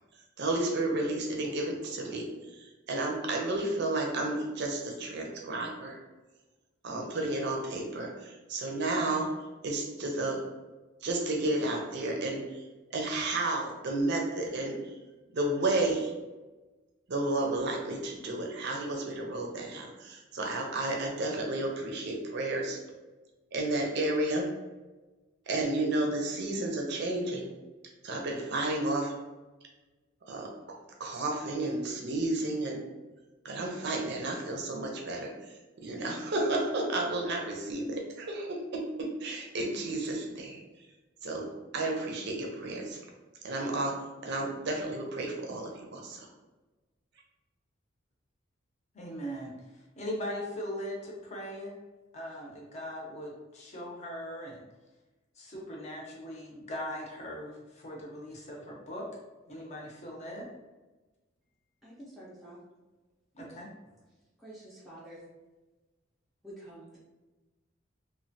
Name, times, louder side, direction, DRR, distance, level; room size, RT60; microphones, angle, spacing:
voice 1, 0.4-2.3 2.6-6.0 6.8-9.3 9.6-10.4 11.0-12.6 12.9-14.8 15.3-16.1 17.1-22.8 23.5-24.5 25.5-27.5 28.0-29.1 30.3-32.8 33.4-35.3 35.8-40.6 41.2-41.5 41.7-43.0 43.4-43.9 44.2-46.3, right 2 dB, 60° right, 0 dB, 0.5 m, -32 dB
voice 2, 48.9-51.7 52.1-54.6 55.4-59.1 59.5-60.5 63.3-63.7, equal, 35° left, -2 dB, 0.7 m, -40 dB
voice 3, 61.8-62.6 64.4-65.2 66.4-67.0, right 1 dB, ahead, -8 dB, 0.5 m, -48 dB
3.1 x 2.2 x 2.6 m, 1.2 s
head